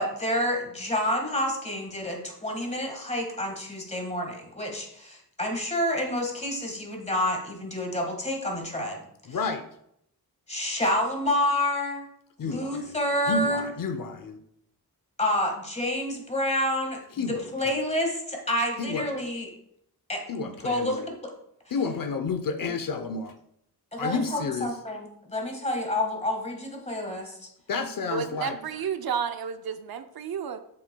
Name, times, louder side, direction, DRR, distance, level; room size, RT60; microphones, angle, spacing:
voice 1, 0.0-9.0 10.5-12.0 12.4-13.7 15.2-19.5 20.1-21.3 23.9-27.5, left 1 dB, 15° left, 1 dB, 1.6 m, -29 dB
voice 2, 9.3-9.7 12.4-13.0 13.3-14.4 17.2-17.7 18.8-19.1 20.3-21.1 21.7-23.3 24.0-24.8 27.7-28.6, left 4 dB, 55° left, 7 dB, 0.6 m, -31 dB
voice 3, 28.1-30.6, right 7 dB, 65° right, 9 dB, 0.6 m, -31 dB
7.6 x 7.4 x 2.2 m, 0.73 s
wide cardioid pair, 125°, 40 cm